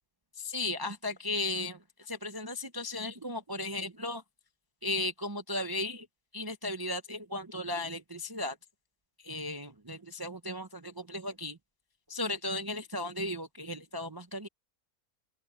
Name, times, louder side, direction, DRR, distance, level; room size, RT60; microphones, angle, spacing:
voice 1, 0.4-4.2 4.8-6.1 6.3-8.6 9.2-11.6 12.1-14.5, left 2 dB, 25° right, 0.5 m, -36 dB
open air
omnidirectional pair, 1.6 m